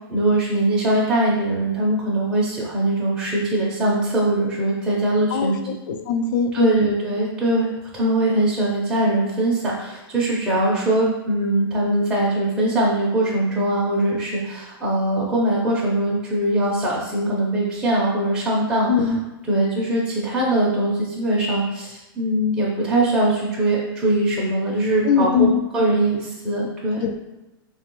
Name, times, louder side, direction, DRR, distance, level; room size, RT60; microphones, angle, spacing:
voice 1, 0.1-5.6 6.5-18.9 19.5-27.1, right 1 dB, 5° right, -7 dB, 0.5 m, -21 dB
voice 2, 5.3-6.9 18.9-19.2 25.0-25.6 27.0-27.1, left 6 dB, 55° left, 6 dB, 0.4 m, -21 dB
3.2 x 2.2 x 2.9 m, 1.0 s
supercardioid pair, 160°, 13 cm